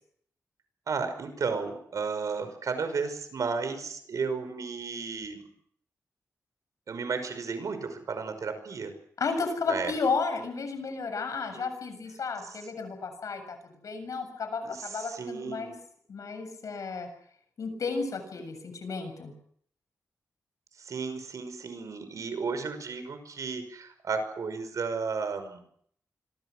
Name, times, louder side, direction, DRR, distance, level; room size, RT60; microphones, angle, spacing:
voice 1, 0.9-5.5 6.9-8.9 9.7-9.9 11.5-11.7 14.6-15.7 20.8-25.6, right 5 dB, 75° right, 9 dB, 5.5 m, -33 dB
voice 2, 9.2-13.6 13.8-15.7 16.1-17.1 17.6-19.3, left 4 dB, 80° left, 8 dB, 7.4 m, -33 dB
26.0 x 23.0 x 6.4 m, 0.64 s
wide cardioid pair, 85°, 6 cm